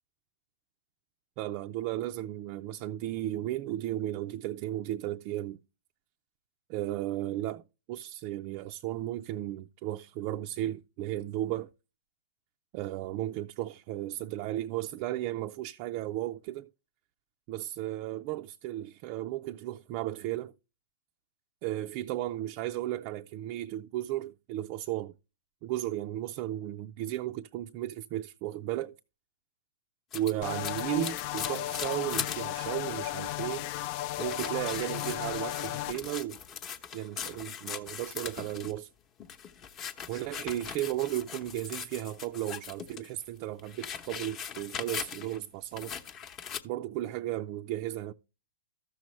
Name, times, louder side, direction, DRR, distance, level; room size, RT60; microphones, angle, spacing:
voice 1, 1.4-5.6 6.7-7.6 7.9-11.7 12.7-16.7 17.5-20.5 21.6-25.1 25.6-28.9 30.1-33.7 34.2-36.4 36.9-38.9 40.1-45.9 46.6-48.1, right 14 dB, 45° right, 0.4 m, -34 dB
sound 1, 30.1-32.4 32.9-33.0 33.2-33.6 34.1-38.8 39.2-43.1 43.4-45.4 45.8-46.6, left 8 dB, 30° left, 0.9 m, -40 dB
sound 2, 30.4-35.9, left 14 dB, 45° left, 0.4 m, -35 dB
13.5 x 6.2 x 3.1 m
hypercardioid pair, 130°, 0 cm